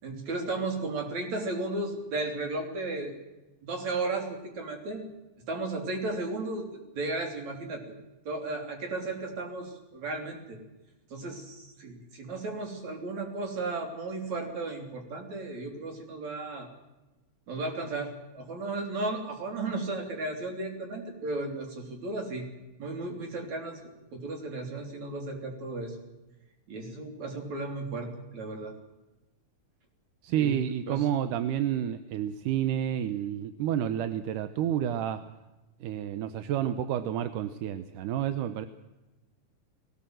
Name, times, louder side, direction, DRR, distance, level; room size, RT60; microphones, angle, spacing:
voice 1, 0.0-3.1 3.6-5.0 5.5-6.7 6.9-7.8 8.3-10.6 11.1-16.7 17.5-22.5 22.8-23.8 24.1-26.0 26.7-28.8 30.3-30.6 30.9-31.1, right 2 dB, 50° right, 3 dB, 4.5 m, -34 dB
voice 2, 30.2-35.2 35.8-38.7, right 10 dB, 75° right, 11 dB, 2.2 m, -30 dB
20.0 x 18.5 x 7.7 m, 1.0 s
omnidirectional pair, 4.1 m